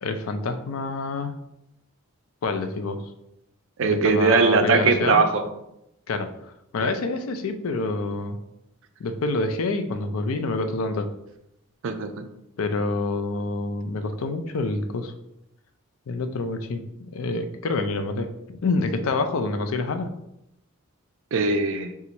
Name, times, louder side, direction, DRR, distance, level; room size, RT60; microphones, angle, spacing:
voice 1, 0.0-1.4 2.4-3.0 3.8-5.2 6.1-8.4 9.0-11.1 12.6-15.1 16.1-20.1, left 3 dB, 70° left, 8 dB, 0.4 m, -27 dB
voice 2, 3.8-5.4 11.8-12.3 21.3-22.0, right 4 dB, 60° right, 8 dB, 0.4 m, -20 dB
3.9 x 2.4 x 4.4 m, 0.84 s
head